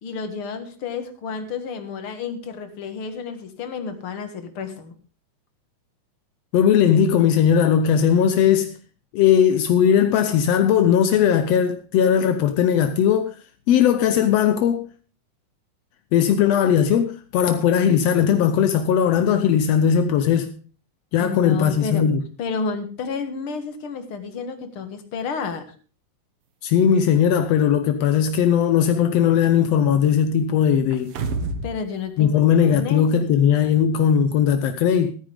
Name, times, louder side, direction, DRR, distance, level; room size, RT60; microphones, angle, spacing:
voice 1, 0.0-4.9 21.2-22.1 22.4-25.7 31.6-32.4 32.7-33.3, left 5 dB, 45° left, 2.2 m, -31 dB
voice 2, 6.5-8.7 9.1-13.4 13.7-14.8 16.1-20.5 21.1-22.2 26.6-31.1 32.2-35.1, left 8 dB, 75° left, 1.6 m, -18 dB
sound 1, 30.9-31.8 32.1-32.2, right 3 dB, 60° right, 1.6 m, -28 dB
14.0 x 14.0 x 3.5 m
omnidirectional pair, 3.8 m